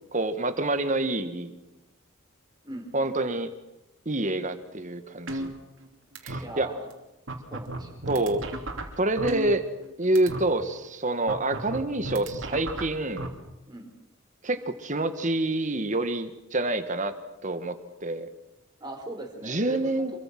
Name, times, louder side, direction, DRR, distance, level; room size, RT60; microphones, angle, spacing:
voice 1, 0.1-1.5 2.9-3.5 4.1-5.5 6.2-6.7 8.1-8.4 9.0-9.6 10.0-13.3 14.4-17.1 17.4-18.3 19.4-20.1, right 2 dB, 35° right, 10 dB, 1.7 m, -27 dB
sound 1, 5.3-5.9 6.2-6.4 6.9-7.0 7.3-9.9 10.2-10.4 11.3-13.3, right 1 dB, 65° right, 3.4 m, -34 dB
voice 2, 6.4-6.9 7.5-8.0 13.7-13.9 18.8-20.1, right 1 dB, 20° right, 3 dB, 4.4 m, -39 dB
27.0 x 23.0 x 6.2 m, 0.95 s
head